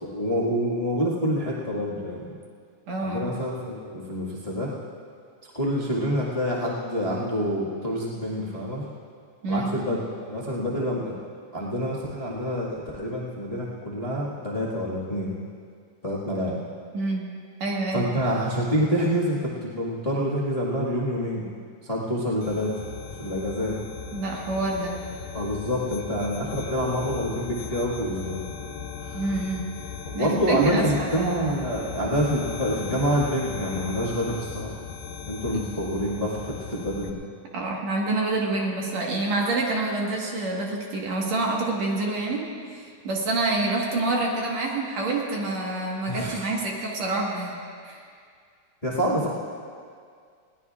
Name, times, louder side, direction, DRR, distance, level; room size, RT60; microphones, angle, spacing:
voice 1, 0.0-2.3 3.0-4.7 5.5-8.8 9.5-10.0 10.3-11.1 11.5-15.3 16.0-16.6 17.9-21.4 21.8-22.7 23.2-23.8 25.3-28.4 29.0-29.2 30.0-34.8 35.3-37.2 46.1-46.5 48.8-49.3, equal, 15° left, -7 dB, 1.4 m, -27 dB
voice 2, 2.9-3.3 9.4-9.7 16.9-17.2 17.6-18.1 24.1-24.9 29.1-29.6 30.1-31.3 37.5-42.4 42.7-47.6 47.8-48.0, right 2 dB, 65° right, -2 dB, 2.7 m, -27 dB
sound 1, 22.4-37.1, left 6 dB, 85° left, 2.4 m, -38 dB
21.0 x 18.0 x 2.5 m, 2.2 s
omnidirectional pair, 3.5 m